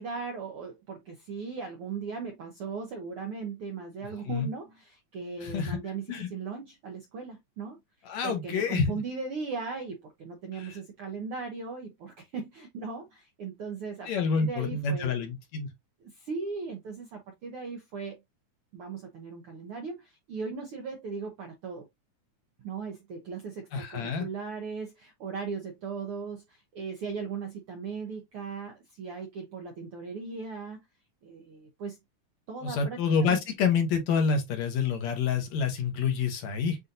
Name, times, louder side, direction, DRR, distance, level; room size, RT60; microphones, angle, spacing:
voice 1, 0.0-7.8 8.2-15.1 16.0-18.2 18.7-21.8 22.6-30.8 31.2-32.0 32.5-33.4, right 5 dB, 75° right, 1.3 m, -38 dB
voice 2, 5.4-5.8 6.1-6.3 8.1-9.0 10.5-10.8 14.1-15.7 23.7-24.3 32.6-36.8, left 5 dB, 70° left, 2.2 m, -28 dB
7.7 x 2.7 x 2.6 m
omnidirectional pair, 3.5 m